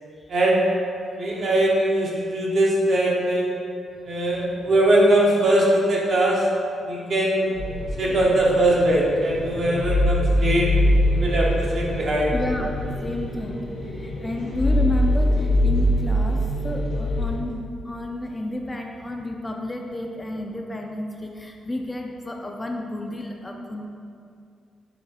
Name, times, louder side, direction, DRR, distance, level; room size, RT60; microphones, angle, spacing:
voice 1, 0.3-0.6 1.2-3.5 4.0-6.5 6.9-7.5 8.0-10.7 11.1-12.3, right 1 dB, 55° right, -4 dB, 0.9 m, -21 dB
sound 1, 7.6-17.3, left 1 dB, 85° left, 0.9 m, -23 dB
voice 2, 12.3-23.8, left 1 dB, 15° left, 2 dB, 0.3 m, -31 dB
6.0 x 3.0 x 2.8 m, 2.4 s
cardioid pair, 100°, 0 cm